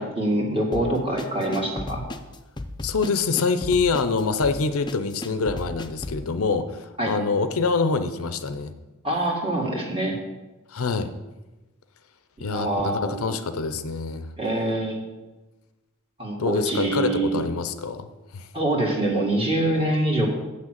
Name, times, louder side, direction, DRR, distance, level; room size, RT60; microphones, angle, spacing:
voice 1, 0.0-2.0 7.0-7.1 9.0-10.2 12.4-13.4 14.4-15.0 16.2-17.4 18.5-20.3, right 1 dB, 25° right, -1 dB, 2.1 m, -25 dB
sound 1, 0.7-6.3, left 2 dB, 20° left, 0.6 m, -35 dB
voice 2, 2.8-8.7 10.7-11.1 12.4-14.3 16.4-18.1 18.3-18.5, left 4 dB, 70° left, 10 dB, 0.6 m, -25 dB
7.8 x 6.3 x 7.4 m, 1.1 s
head